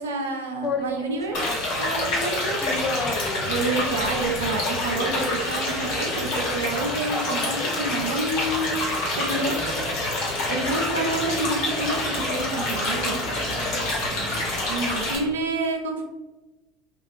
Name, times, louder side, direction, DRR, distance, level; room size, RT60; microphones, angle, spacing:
voice 1, 0.0-1.5 1.8-2.6 3.5-8.7 9.2-9.6 10.5-13.2 14.7-16.0, right 2 dB, 75° right, 3 dB, 0.4 m, -28 dB
sound 1, 0.6-15.4, left 3 dB, 30° left, 0.4 m, -37 dB
sound 2, 1.3-15.2, left 1 dB, 55° left, 0.9 m, -27 dB
voice 2, 9.1-10.5 14.1-14.6, right 1 dB, 45° right, -4 dB, 0.7 m, -39 dB
2.4 x 2.3 x 3.2 m, 1.2 s
figure-of-eight pair, 70°, 0 cm